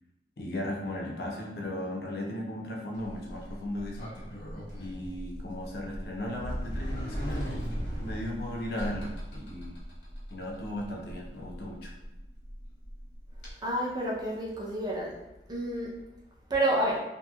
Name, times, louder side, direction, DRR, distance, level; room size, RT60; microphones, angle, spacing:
voice 1, 0.4-4.0 4.8-9.7 10.3-11.9, left 1 dB, 60° left, -1 dB, 0.6 m, -36 dB
Sliding door, 2.9-13.5, equal, 90° left, 1.1 m, -39 dB
voice 2, 13.6-15.1 15.5-15.9 16.5-17.0, right 1 dB, 25° right, -4 dB, 0.5 m, -29 dB
2.9 x 2.6 x 2.3 m, 0.95 s
head